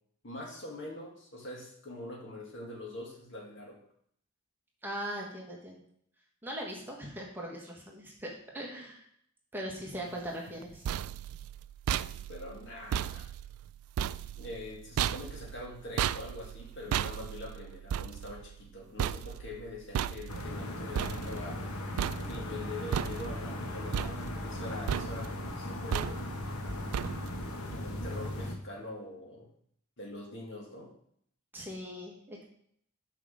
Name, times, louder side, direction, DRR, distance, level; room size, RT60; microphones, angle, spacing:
voice 1, 0.2-3.8 12.3-13.3 14.4-21.7 22.3-26.3 27.7-29.5 30.0-30.9, left 2 dB, 60° left, 0 dB, 1.9 m, -44 dB
voice 2, 4.8-5.8 6.4-9.0 9.5-10.8 31.5-32.4, equal, 10° right, -2 dB, 1.4 m, -40 dB
sound 1, 10.5-21.7 22.0-22.6 22.9-23.6 23.9-24.6 24.9-25.4 25.9-26.5 26.9-27.5, right 9 dB, 85° right, 0.3 m, -35 dB
sound 2, 20.3-28.5, left 1 dB, 90° left, 1.1 m, -38 dB
6.6 x 4.9 x 6.3 m, 0.66 s
head